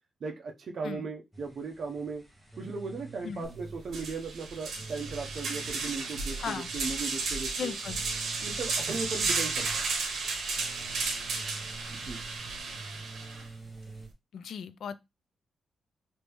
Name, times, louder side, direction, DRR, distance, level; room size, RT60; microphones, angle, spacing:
voice 1, 0.2-2.2 2.6-7.7 8.4-9.8 11.9-12.2, right 4 dB, 50° right, 0.7 m, -37 dB
sound 1, 1.3-14.1, right 3 dB, 5° right, 1.0 m, -48 dB
sound 2, 3.4-3.5 3.9-13.4, right 4 dB, 75° right, 0.9 m, -33 dB
voice 2, 6.4-6.7 7.6-8.0 14.3-15.0, left 7 dB, 70° left, 0.3 m, -37 dB
3.1 x 2.6 x 3.3 m
wide cardioid pair, 135°, 0 cm